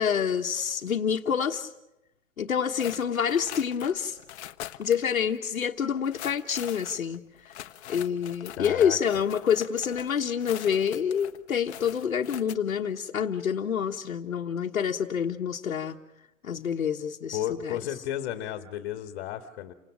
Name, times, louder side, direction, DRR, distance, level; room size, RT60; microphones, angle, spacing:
voice 1, 0.0-1.7 2.4-4.2 4.8-7.2 7.5-7.6 7.9-16.0 16.4-17.8, left 7 dB, 85° left, 0 dB, 1.4 m, -27 dB
sound 1, 2.8-5.1 5.3-5.4 6.0-12.5, left 12 dB, 55° left, 1.1 m, -43 dB
voice 2, 8.6-9.0 17.3-19.7, left 11 dB, 40° left, 6 dB, 2.0 m, -33 dB
29.5 x 18.5 x 7.5 m, 0.93 s
hypercardioid pair, 130°, 40 cm